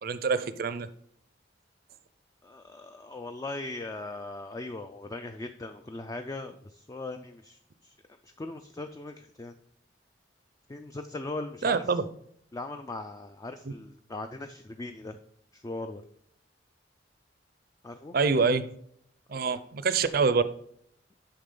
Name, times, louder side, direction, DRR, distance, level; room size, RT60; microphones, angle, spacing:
voice 1, 0.0-0.9 11.6-12.0 18.1-18.7 19.3-20.4, right 4 dB, 55° right, 13 dB, 0.5 m, -25 dB
voice 2, 2.4-7.9 8.2-9.5 10.7-11.8 12.5-15.2 15.5-16.0 17.8-18.1 19.5-19.6, left 2 dB, 20° left, 7 dB, 0.3 m, -39 dB
8.6 x 5.8 x 3.8 m, 0.67 s
head